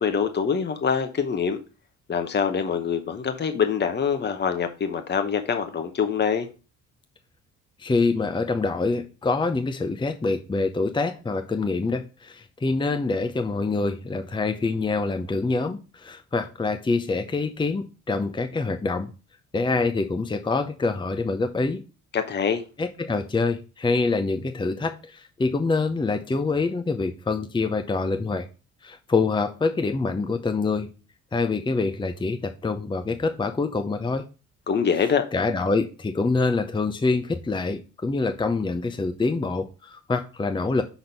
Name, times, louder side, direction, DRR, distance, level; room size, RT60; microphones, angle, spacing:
voice 1, 0.0-1.6 2.1-6.5 22.1-22.6 34.7-35.2, left 6 dB, 35° left, 1.0 m, -24 dB
voice 2, 7.8-19.1 19.5-21.8 22.8-28.5 28.8-30.9 31.3-34.2 35.3-40.8, left 3 dB, 15° left, 0.7 m, -25 dB
6.1 x 4.0 x 5.2 m
cardioid pair, 90°, 30 cm